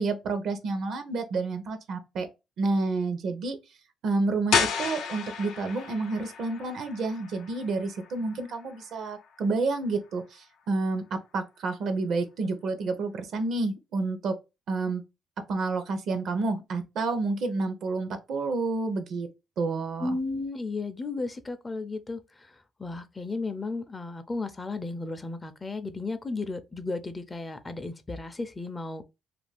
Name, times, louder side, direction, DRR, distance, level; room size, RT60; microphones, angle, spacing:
voice 1, 0.0-2.3 2.6-3.6 4.0-14.3 14.7-15.0 15.5-19.3 19.6-20.1, right 3 dB, 70° right, 0.7 m, -29 dB
sound 1, 4.5-10.1, left 6 dB, 90° left, 0.6 m, -33 dB
voice 2, 20.0-29.0, left 3 dB, 25° left, 0.4 m, -34 dB
2.5 x 2.3 x 3.3 m
cardioid pair, 90°, 0 cm